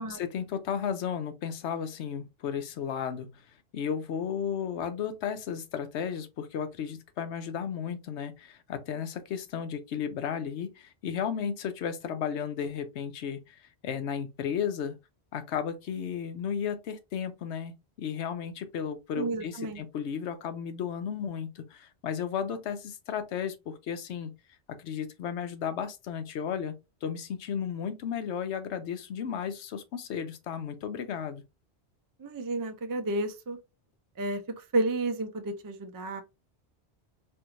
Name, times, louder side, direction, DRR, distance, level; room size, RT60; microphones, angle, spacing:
voice 1, 0.0-3.4 3.7-15.0 15.3-17.7 18.0-24.3 24.8-26.7 27.0-31.4, left 7 dB, 85° left, 0.9 m, -34 dB
voice 2, 19.1-19.8 32.2-33.6 34.2-36.2, right 2 dB, 30° right, 0.4 m, -31 dB
4.5 x 2.7 x 2.5 m
omnidirectional pair, 1.1 m